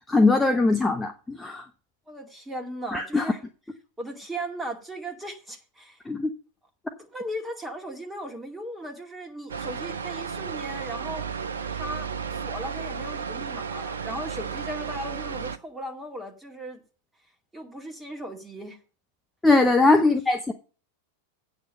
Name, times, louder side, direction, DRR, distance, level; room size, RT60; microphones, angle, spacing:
voice 1, 0.1-1.7 2.9-3.3 6.1-6.3 19.4-20.5, left 3 dB, 10° left, 0.8 m, -21 dB
voice 2, 2.1-3.4 4.0-6.0 7.0-11.2 11.7-16.8 17.5-18.8 19.6-20.1, right 1 dB, 10° right, 2.1 m, -37 dB
sound 1, 9.5-15.6, right 6 dB, 70° right, 0.6 m, -33 dB
8.3 x 6.3 x 6.5 m
figure-of-eight pair, 90°, 0 cm